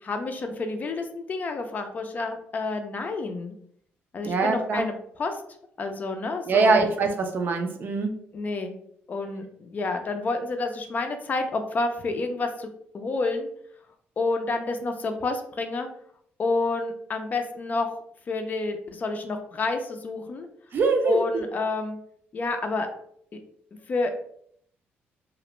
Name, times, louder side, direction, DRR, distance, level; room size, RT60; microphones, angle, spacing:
voice 1, 0.0-3.5 4.1-5.4 5.8-6.9 8.3-8.7 9.1-12.7 12.9-13.5 14.2-15.9 16.4-17.9 18.3-20.5 21.1-22.0 22.3-22.9 23.9-24.1, left 3 dB, 40° left, 6 dB, 0.4 m, -29 dB
voice 2, 4.2-4.9 6.5-8.1 20.7-21.5, right 4 dB, 50° right, 4 dB, 0.5 m, -23 dB
2.4 x 2.0 x 2.9 m, 0.67 s
cardioid pair, 100°, 4 cm